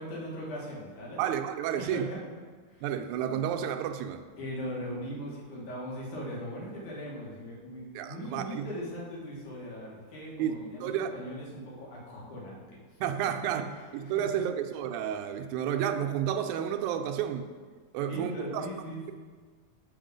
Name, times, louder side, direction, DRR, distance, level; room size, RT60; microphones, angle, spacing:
voice 1, 0.0-1.3 1.8-2.2 2.7-2.8 3.3-3.4 4.4-12.6 13.2-13.4 14.0-14.3 17.9-19.1, equal, 80° left, -4 dB, 3.2 m, -39 dB
voice 2, 1.2-2.1 2.8-4.2 8.0-8.7 10.4-11.1 13.0-13.6 13.9-17.5 17.9-18.7, right 9 dB, 80° right, 6 dB, 1.9 m, -31 dB
7.1 x 5.9 x 5.1 m, 1.5 s
omnidirectional pair, 3.5 m